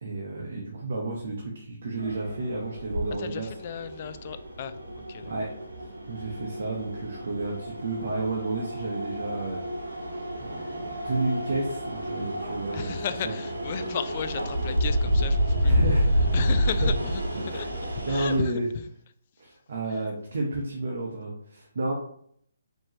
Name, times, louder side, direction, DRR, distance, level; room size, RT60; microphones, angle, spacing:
voice 1, 0.0-3.5 5.2-5.5 6.1-9.6 10.3-13.0 13.2-13.3 15.6-16.4 16.8-16.9 17.3-18.7 19.4-21.9, right 2 dB, 65° right, -2 dB, 0.9 m, -31 dB
sound 1, 2.0-18.4, equal, 85° right, 1.0 m, -29 dB
voice 2, 3.2-4.8 5.1-5.3 12.7-15.8 16.3-17.7 18.0-18.6 19.9-20.0, left 8 dB, 40° left, 10 dB, 0.3 m, -35 dB
4.6 x 2.9 x 3.0 m, 0.66 s
hypercardioid pair, 145°, 0 cm